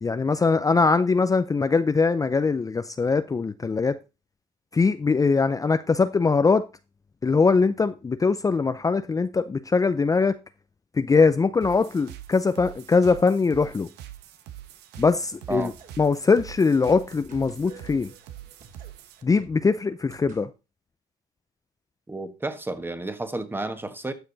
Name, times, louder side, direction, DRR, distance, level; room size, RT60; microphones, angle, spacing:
voice 1, 0.0-4.0 4.7-6.6 7.2-10.3 10.9-13.9 15.0-15.7 16.0-18.1 19.2-20.5, left 4 dB, 20° left, 0.6 m, -22 dB
sound 1, 11.6-19.2, right 12 dB, 85° right, 1.2 m, -44 dB
sound 2, 15.2-20.4, right 4 dB, 50° right, 3.7 m, -52 dB
voice 2, 22.1-24.1, right 2 dB, 10° right, 1.5 m, -31 dB
12.5 x 6.7 x 4.0 m
cardioid pair, 110°, 17 cm